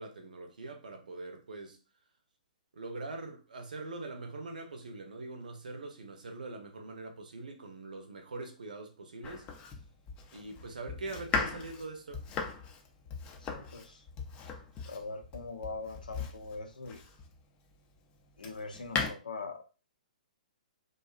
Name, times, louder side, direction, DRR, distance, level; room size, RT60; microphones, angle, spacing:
voice 1, 0.0-1.8 2.7-9.5 10.3-12.3, right 2 dB, 70° right, 0.7 m, -43 dB
Domestic sounds home sounds, 9.2-17.4 18.0-19.1, left 5 dB, 25° left, 0.4 m, -38 dB
voice 2, 13.4-14.1 14.9-17.0 18.4-19.6, left 3 dB, 75° left, 0.6 m, -42 dB
2.6 x 2.3 x 2.3 m
figure-of-eight pair, 120°, 5 cm